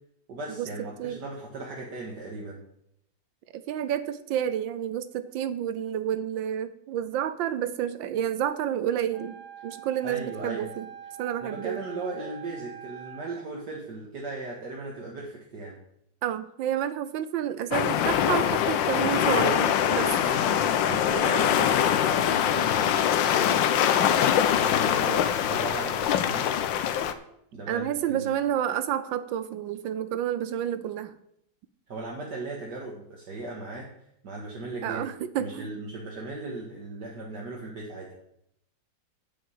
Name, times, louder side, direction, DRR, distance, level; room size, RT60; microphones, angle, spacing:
voice 1, 0.3-2.6 10.0-10.7 11.4-15.8 20.2-20.7 21.2-23.9 24.4-26.6 27.5-28.3 31.9-33.9 34.2-35.0 35.4-38.1, right 2 dB, 60° right, -2 dB, 2.2 m, -37 dB
voice 2, 3.5-9.4 9.6-10.9 11.2-11.8 16.2-20.2 20.9-21.3 25.0-25.2 27.7-31.1 34.8-35.7, right 10 dB, 80° right, 13 dB, 1.5 m, -30 dB
Wind instrument woodwind instrument, 9.1-13.5, right 8 dB, 20° right, 1.8 m, -45 dB
sound 1, 17.7-27.1, left 9 dB, 80° left, 1.4 m, -23 dB
9.0 x 6.5 x 7.8 m, 0.75 s
omnidirectional pair, 2.1 m